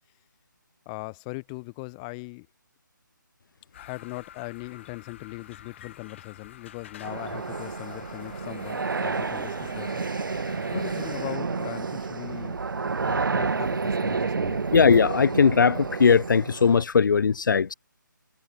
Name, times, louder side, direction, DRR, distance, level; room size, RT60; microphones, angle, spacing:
voice 1, 0.9-2.5 3.8-10.1 10.7-12.6 13.0-14.7, left 30 dB, 20° left, 2.2 m, -39 dB
sound 1, 3.7-11.4, left 10 dB, 35° left, 5.2 m, -48 dB
sound 2, 7.0-16.8, right 4 dB, 75° right, 1.0 m, -30 dB
sound 3, 9.1-13.6, right 27 dB, 15° right, 0.9 m, -48 dB
voice 2, 14.7-17.7, left 6 dB, 70° left, 0.4 m, -19 dB
figure-of-eight pair, 155°, 11 cm